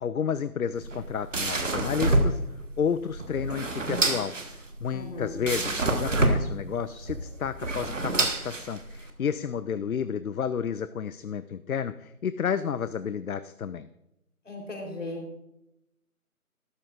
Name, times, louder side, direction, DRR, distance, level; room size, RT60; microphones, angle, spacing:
voice 1, 0.0-2.4 2.8-4.4 4.8-13.9, left 7 dB, 70° left, 14 dB, 0.5 m, -31 dB
sound 1, 0.7-9.1, right 2 dB, 55° right, 1.4 m, -28 dB
voice 2, 4.9-5.4 14.4-15.2, left 2 dB, 55° left, 1 dB, 3.8 m, -37 dB
14.5 x 12.5 x 2.5 m, 0.87 s
figure-of-eight pair, 160°, 45 cm